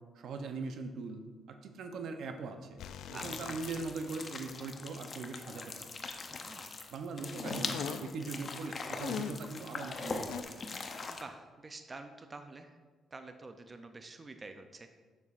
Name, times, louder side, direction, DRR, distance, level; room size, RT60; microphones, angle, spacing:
voice 1, 0.0-2.7 3.1-5.9 6.9-10.6, right 4 dB, 70° right, 6 dB, 0.6 m, -41 dB
sound 1, 2.8-4.2 4.5-4.6 7.3-8.2 8.9-9.5 10.3-10.4, left 8 dB, 80° left, 0.3 m, -41 dB
voice 2, 3.1-3.5 6.3-6.8 11.1-12.8 13.1-14.9, right 3 dB, 30° right, 7 dB, 0.4 m, -48 dB
sound 2, 3.2-11.2, left 3 dB, 40° left, 0.6 m, -42 dB
6.8 x 6.6 x 2.5 m, 1.4 s
cardioid pair, 90°, 0 cm